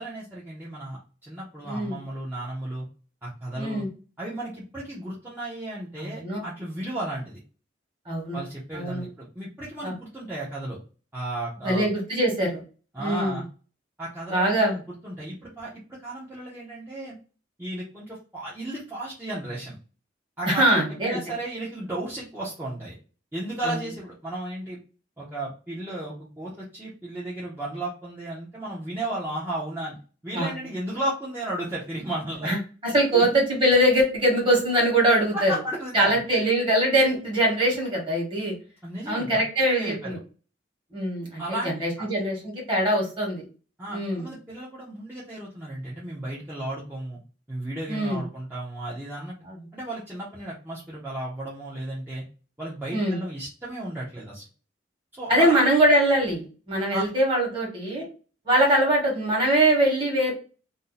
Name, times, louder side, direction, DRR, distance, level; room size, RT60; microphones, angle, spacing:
voice 1, 0.0-2.9 3.2-3.8 4.2-7.4 8.3-10.8 11.1-11.9 12.9-13.4 14.0-15.7 16.0-17.2 17.6-19.8 20.4-22.9 23.3-24.8 25.2-30.0 30.2-32.5 33.1-33.3 35.1-36.5 38.8-40.2 41.4-42.1 43.8-47.2 47.5-49.3 49.7-52.2 52.6-54.4 55.1-55.6 56.9-57.0, right 1 dB, 10° right, -7 dB, 0.7 m, -34 dB
voice 2, 1.6-2.0 3.5-3.9 6.0-6.4 8.1-8.4 8.7-9.0 9.8-9.9 11.6-12.6 13.0-13.4 14.3-14.7 20.4-21.2 23.6-23.8 30.3-30.6 32.4-35.5 35.9-38.5 39.1-40.2 40.9-43.4 43.9-44.3 47.9-48.2 49.4-49.6 52.9-53.2 55.3-58.1 58.4-60.3, right 1 dB, 30° right, -2 dB, 1.3 m, -23 dB
2.7 x 2.2 x 3.8 m, 0.37 s
head